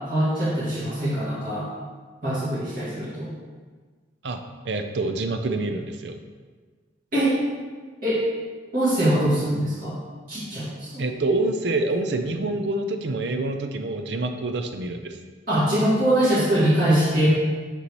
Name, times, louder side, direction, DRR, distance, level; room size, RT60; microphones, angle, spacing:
voice 1, 0.0-1.7 2.2-3.3 7.1-7.4 8.0-8.3 8.7-10.0 10.3-11.1 15.5-17.3, right 1 dB, 50° right, -11 dB, 2.0 m, -23 dB
voice 2, 4.6-6.2 11.0-15.2, right 2 dB, 65° right, 6 dB, 0.6 m, -26 dB
6.8 x 5.4 x 3.0 m, 1.5 s
head